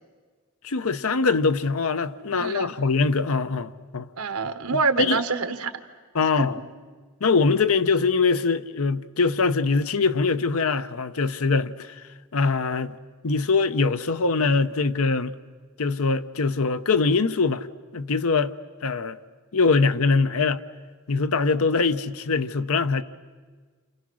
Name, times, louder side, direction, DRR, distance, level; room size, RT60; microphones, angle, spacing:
voice 1, 0.6-4.1 5.0-5.2 6.1-6.6 7.2-12.0 12.3-13.0 13.2-15.3 15.8-17.7 17.9-18.5 18.8-19.2 19.5-20.6 21.1-23.0, left 4 dB, 80° left, 0.8 m, -23 dB
voice 2, 2.4-2.7 4.2-5.7 6.4-6.5, right 4 dB, 90° right, 1.5 m, -26 dB
30.0 x 28.0 x 6.4 m
head